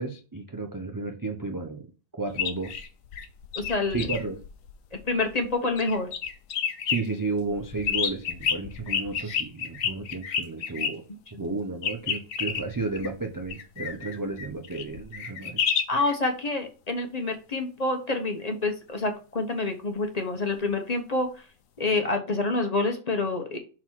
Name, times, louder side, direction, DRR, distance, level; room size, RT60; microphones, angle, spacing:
voice 1, 0.0-1.9 2.2-2.8 3.9-4.4 6.9-11.0 11.3-15.6, right 3 dB, 35° right, 4 dB, 0.3 m, -32 dB
sound 1, 2.3-5.5 5.8-7.0 7.5-10.9 11.8-16.1 21.9-22.0, left 7 dB, 75° left, 1.1 m, -30 dB
voice 2, 3.6-4.1 4.9-6.1 9.2-9.4 10.8-10.9 11.3-11.5 15.9-21.5 21.8-23.6, left 3 dB, 35° left, 5 dB, 0.9 m, -28 dB
6.0 x 3.9 x 4.5 m, 0.36 s
omnidirectional pair, 1.4 m